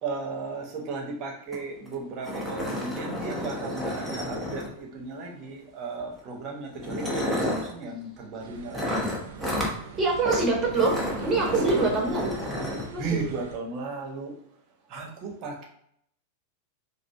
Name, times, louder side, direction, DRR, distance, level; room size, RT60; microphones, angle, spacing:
voice 1, 0.0-9.1 11.4-11.9 13.0-14.3 14.9-15.6, right 3 dB, 40° right, 0 dB, 1.1 m, -35 dB
sound 1, 1.5-1.6 1.9-2.0 2.2-5.0 6.0-6.2 6.8-7.7 8.7-9.8 10.2-10.4 10.7-12.9, left 1 dB, ahead, 1.1 m, -31 dB
sound 2, 8.4-13.6, right 6 dB, 60° right, 0.5 m, -41 dB
voice 2, 10.0-12.3 12.9-13.3, right 3 dB, 15° right, -1 dB, 1.4 m, -25 dB
5.1 x 2.4 x 3.5 m, 0.70 s
figure-of-eight pair, 90°, 0 cm